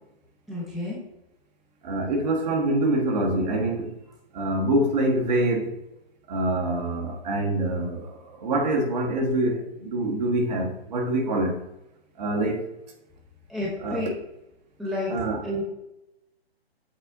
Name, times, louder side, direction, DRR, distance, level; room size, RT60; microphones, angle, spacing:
voice 1, 0.5-1.0 13.5-14.1 14.8-15.1 15.4-15.6, left 1 dB, ahead, 0.8 m, -30 dB
voice 2, 1.8-3.9 4.3-5.8 6.3-11.6 12.2-12.7 13.8-14.0 15.1-15.4, right 1 dB, 40° right, 1.4 m, -25 dB
7.8 x 3.4 x 3.6 m
figure-of-eight pair, 135°, 31 cm